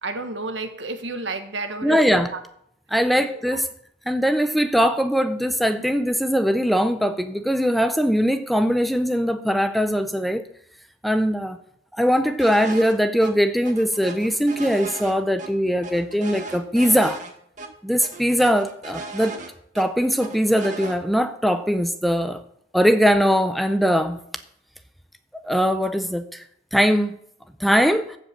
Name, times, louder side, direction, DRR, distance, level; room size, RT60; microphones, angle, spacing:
voice 1, 0.0-2.4 3.3-3.4, right 2 dB, 75° right, 1.5 m, -31 dB
voice 2, 1.8-2.3 2.9-3.7 4.1-10.4 11.0-11.6 11.9-17.2 17.8-19.4 19.7-22.4 22.7-24.2 25.3-26.4 26.7-27.2 27.6-28.2, equal, ahead, 0.6 m, -21 dB
sound 1, 12.4-12.9 13.2-13.3 13.7-15.5 15.8-17.3 17.6-17.7 18.0-19.9 20.2-21.0, right 3 dB, 40° right, 1.7 m, -36 dB
14.5 x 5.3 x 7.3 m
head